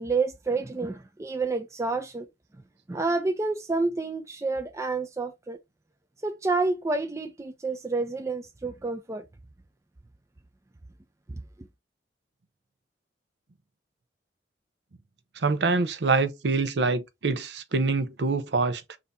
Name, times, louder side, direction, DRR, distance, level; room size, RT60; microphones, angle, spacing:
voice 1, 0.0-2.3 2.9-5.6 6.2-9.2, right 3 dB, 15° right, 0.4 m, -29 dB
voice 2, 15.4-19.0, right 3 dB, 75° right, 0.6 m, -25 dB
3.4 x 2.7 x 3.9 m
head